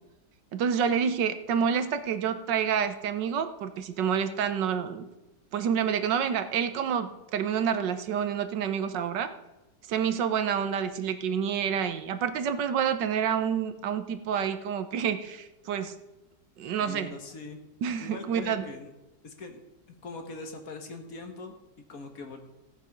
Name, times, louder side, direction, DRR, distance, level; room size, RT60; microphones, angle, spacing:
voice 1, 0.5-5.1 5.5-9.3 9.9-16.0 16.6-17.1 17.8-18.6, right 7 dB, 90° right, 10 dB, 1.5 m, -28 dB
voice 2, 16.8-17.6 18.0-18.9 19.2-19.6 20.0-22.4, left 3 dB, 55° left, 5 dB, 1.7 m, -42 dB
15.5 x 7.1 x 5.3 m, 1.0 s
omnidirectional pair, 1.9 m